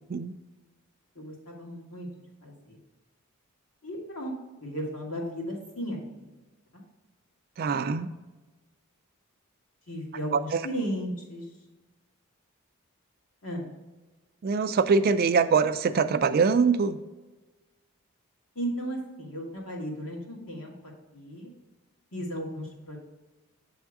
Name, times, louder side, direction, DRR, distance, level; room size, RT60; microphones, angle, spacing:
voice 1, 1.2-2.1 2.4-2.8 3.8-4.3 4.6-6.3 9.9-11.5 13.4-13.7 18.6-21.5 22.1-23.0, equal, 65° left, -2 dB, 2.0 m, -35 dB
voice 2, 7.6-8.1 10.3-10.6 14.4-17.0, right 5 dB, 45° right, 10 dB, 0.3 m, -23 dB
7.5 x 3.5 x 4.7 m, 1.2 s
head